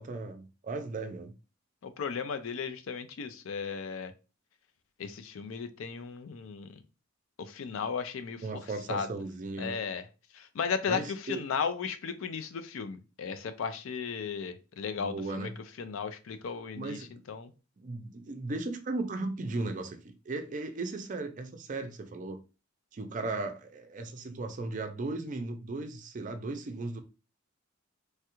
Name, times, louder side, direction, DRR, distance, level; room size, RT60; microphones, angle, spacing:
voice 1, 0.0-1.3 8.4-9.8 10.9-11.4 15.0-15.5 16.7-17.1 17.8-22.4 22.9-27.0, right 3 dB, 40° right, 0.4 m, -36 dB
voice 2, 1.8-4.1 5.0-6.8 7.4-8.6 8.9-9.1 9.6-10.0 10.3-15.5 15.8-17.5, left 6 dB, 75° left, 0.4 m, -35 dB
3.2 x 2.3 x 2.9 m
head